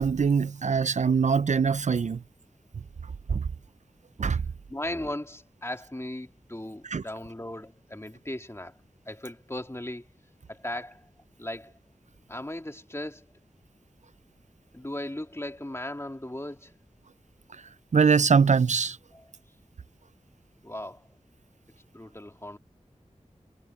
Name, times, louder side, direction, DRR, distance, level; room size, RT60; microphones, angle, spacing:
voice 1, 0.0-2.2 3.3-3.4 4.2-4.4 6.8-7.0 17.9-19.0, right 5 dB, 65° right, 0.4 m, -23 dB
voice 2, 4.7-8.7 9.1-10.1 10.5-11.1 11.4-11.7 12.3-13.3 14.7-16.7 19.1-19.2 20.6-21.0 21.9-22.6, left 1 dB, 20° left, 2.2 m, -37 dB
wide cardioid pair, 50°, 13 cm